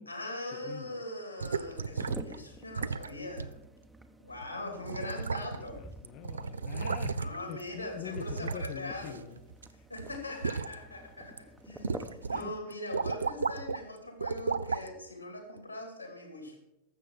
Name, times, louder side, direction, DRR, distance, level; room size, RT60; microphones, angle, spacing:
voice 1, 0.0-3.5 4.2-5.8 7.2-9.2 9.9-16.6, left 1 dB, 85° left, 4 dB, 2.9 m, -41 dB
voice 2, 0.5-1.0 4.8-9.4 9.7-9.9 12.3-12.8, left 10 dB, 40° left, 8 dB, 0.5 m, -45 dB
sound 1, 1.4-12.6, right 1 dB, 10° right, 0.9 m, -50 dB
sound 2, 1.4-2.4 2.7-3.1 3.4-3.5 4.4-4.5 4.8-5.8 6.0-7.5 8.1-9.7 10.0-10.7 11.2-11.4 11.8-12.4 12.7-13.8 14.2-14.9 15.6-15.7, right 5 dB, 75° right, 0.4 m, -34 dB
12.5 x 7.4 x 6.2 m, 0.92 s
figure-of-eight pair, 90°, 0 cm